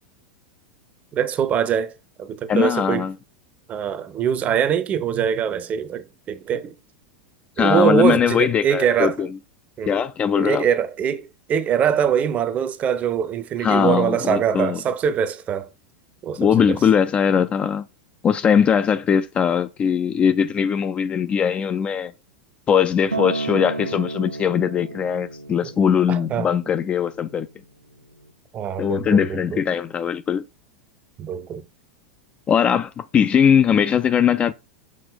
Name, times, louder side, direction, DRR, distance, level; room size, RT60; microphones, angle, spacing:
voice 1, 1.1-3.1 3.7-6.7 7.6-9.1 9.8-10.0 10.3-11.2 11.5-15.7 16.2-16.8 25.6-25.7 26.1-26.5 28.5-29.6 31.2-31.6, right 8 dB, 25° right, 0.6 m, -23 dB
voice 2, 2.5-3.1 7.6-9.4 9.8-10.6 13.6-14.8 16.4-17.9 18.2-22.1 22.7-27.5 28.8-30.4 32.5-34.5, left 7 dB, 20° left, 0.3 m, -20 dB
Acoustic guitar, 23.1-27.4 28.2-28.3, right 3 dB, 90° right, 0.4 m, -32 dB
6.3 x 3.9 x 3.9 m
figure-of-eight pair, 90°, 5 cm